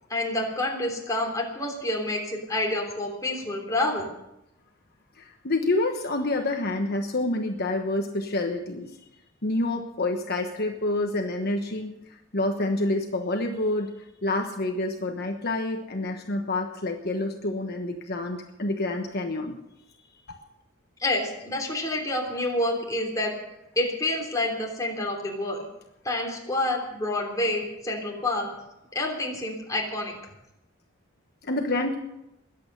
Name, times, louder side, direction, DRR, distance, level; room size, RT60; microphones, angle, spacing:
voice 1, 0.1-4.1 21.0-23.3 23.7-25.7 26.0-28.5 28.9-30.2, left 1 dB, 15° left, 0 dB, 3.2 m, -28 dB
voice 2, 5.2-9.0 9.4-19.6 20.3-20.4 31.4-32.0, left 2 dB, 50° left, 3 dB, 1.2 m, -28 dB
21.5 x 8.7 x 6.7 m, 0.89 s
head